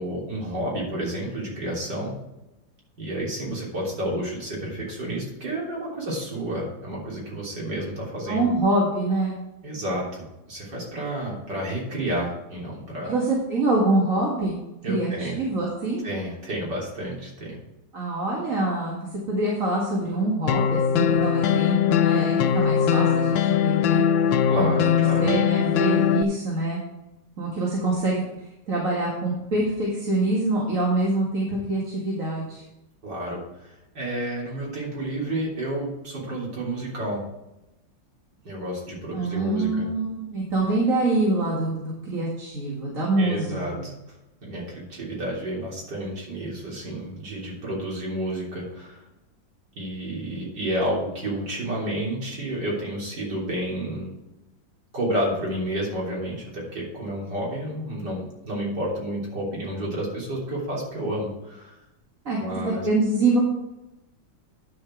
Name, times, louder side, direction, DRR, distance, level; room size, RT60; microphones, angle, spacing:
voice 1, 0.0-2.2 3.0-8.5 9.6-13.1 14.8-15.4 16.0-17.6 24.5-25.3 33.0-37.3 38.5-39.9 43.2-43.9 44.4-49.0 49.8-54.1 54.9-61.7 62.4-62.9, right 1 dB, 65° right, -4 dB, 4.1 m, -30 dB
voice 2, 8.3-9.3 13.0-16.1 17.9-19.0 19.3-24.0 24.6-26.8 27.4-28.2 28.7-32.6 39.1-43.9 62.3-62.4 62.6-63.4, right 2 dB, 45° right, -4 dB, 2.3 m, -25 dB
sound 1, 20.5-26.2, left 8 dB, 85° left, 1.4 m, -21 dB
10.5 x 6.8 x 4.6 m, 0.94 s
omnidirectional pair, 2.1 m